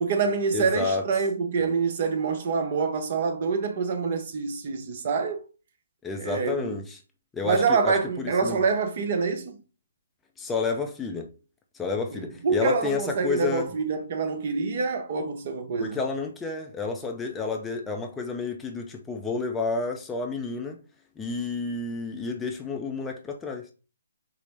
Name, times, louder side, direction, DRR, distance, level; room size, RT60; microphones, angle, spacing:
voice 1, 0.0-5.4 6.2-6.7 7.4-9.6 12.1-16.0, right 5 dB, 45° right, 0.7 m, -26 dB
voice 2, 0.5-1.0 6.0-7.0 7.3-8.6 10.4-11.3 11.7-13.7 15.8-20.8 21.2-23.7, left 4 dB, 10° left, 0.4 m, -30 dB
4.7 x 2.0 x 3.3 m
figure-of-eight pair, 140°, 0 cm